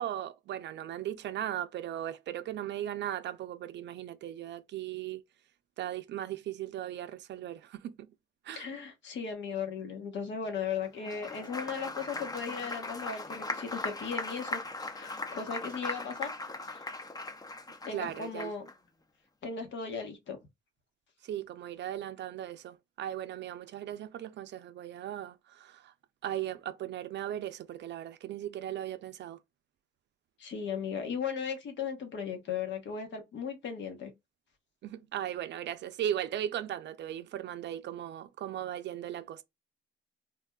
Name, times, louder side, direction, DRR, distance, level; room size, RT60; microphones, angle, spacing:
voice 1, 0.0-5.2 5.8-7.9 8.4-8.7 17.9-18.5 21.2-25.9 26.2-29.4 34.8-39.4, right 11 dB, 60° right, 0.5 m, -37 dB
voice 2, 8.5-16.3 16.7-16.8 17.8-18.7 19.4-20.4 30.4-34.1, left 6 dB, 65° left, 1.1 m, -37 dB
Applause, 10.9-18.7, left 2 dB, 20° left, 0.5 m, -39 dB
3.4 x 2.3 x 2.2 m
cardioid pair, 90°, 20 cm